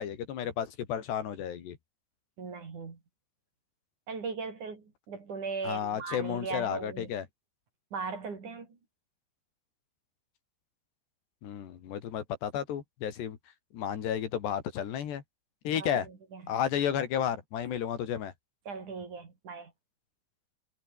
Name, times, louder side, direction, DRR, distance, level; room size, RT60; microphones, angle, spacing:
voice 1, 0.0-1.8 5.6-7.2 11.4-13.4 13.7-15.2 15.6-16.1 16.5-18.3, left 9 dB, 75° left, 4.7 m, -32 dB
voice 2, 2.4-3.0 4.1-7.1 7.9-8.7 15.8-16.4 18.7-19.7, right 4 dB, 45° right, 5.4 m, -38 dB
omnidirectional pair, 5.0 m